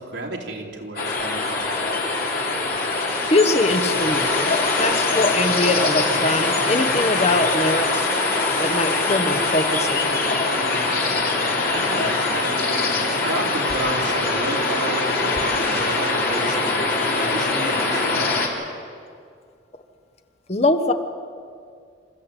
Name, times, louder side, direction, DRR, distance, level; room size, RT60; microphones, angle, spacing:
voice 1, 0.0-2.3 11.7-12.5 13.2-18.5, right 2 dB, 70° right, 0 dB, 3.1 m, -32 dB
sound 1, 1.0-18.5, left 3 dB, 50° left, 3.5 m, -22 dB
voice 2, 3.3-8.1 8.6-10.2 20.5-20.9, left 2 dB, 35° left, 7 dB, 1.1 m, -22 dB
27.5 x 14.0 x 8.3 m, 2.2 s
head